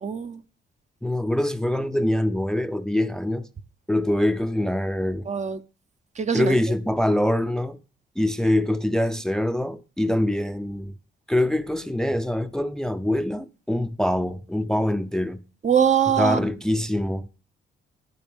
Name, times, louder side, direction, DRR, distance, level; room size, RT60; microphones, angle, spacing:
voice 1, 0.0-0.4 5.3-5.6 6.2-6.6 15.6-16.4, right 8 dB, 35° right, 0.8 m, -22 dB
voice 2, 1.0-3.5 3.9-5.3 6.3-7.8 8.2-10.9 11.3-15.4 16.2-17.3, left 1 dB, 5° left, 0.6 m, -24 dB
12.0 x 10.0 x 3.5 m
cardioid pair, 90°, 20 cm